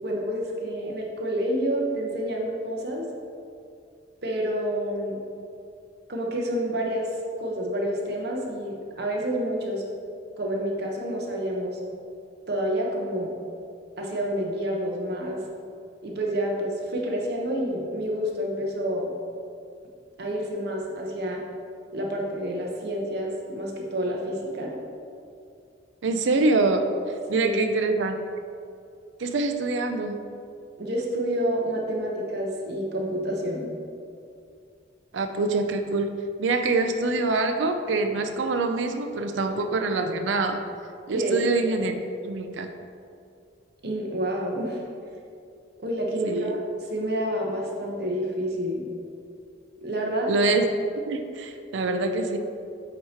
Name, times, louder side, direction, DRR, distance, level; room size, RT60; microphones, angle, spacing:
voice 1, 0.0-3.1 4.2-5.2 6.1-7.1 7.4-9.8 10.4-11.8 12.5-13.3 14.0-15.4 16.0-19.1 20.2-21.4 21.9-24.7 27.3-27.6 30.8-33.7 41.1-41.4 43.8-44.8 45.8-46.6 46.9-48.9 49.8-50.3, equal, 55° right, -1 dB, 0.9 m, -28 dB
voice 2, 26.0-26.9 27.3-28.2 29.2-30.2 35.1-36.1 36.4-40.6 41.1-42.7 46.2-46.5 50.3-50.7 51.1-52.4, right 3 dB, 75° right, 7 dB, 0.4 m, -25 dB
8.3 x 2.9 x 4.3 m, 2.4 s
head